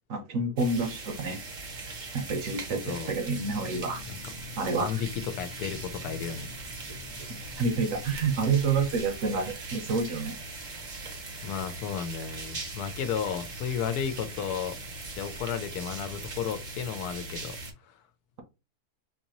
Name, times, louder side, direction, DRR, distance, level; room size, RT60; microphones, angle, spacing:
voice 1, 0.1-1.4 2.1-4.0 4.6-4.9 7.3-10.4, right 4 dB, 65° right, 1.1 m, -28 dB
sound 1, 0.6-17.7, right 3 dB, 40° right, 0.7 m, -40 dB
voice 2, 2.7-3.1 4.1-4.3 4.8-6.5 11.4-14.8 15.2-17.6 17.9-18.0, left 8 dB, 85° left, 1.1 m, -33 dB
sound 2, 3.4-9.5, left 6 dB, 55° left, 1.1 m, -45 dB
4.1 x 2.7 x 2.9 m
omnidirectional pair, 1.6 m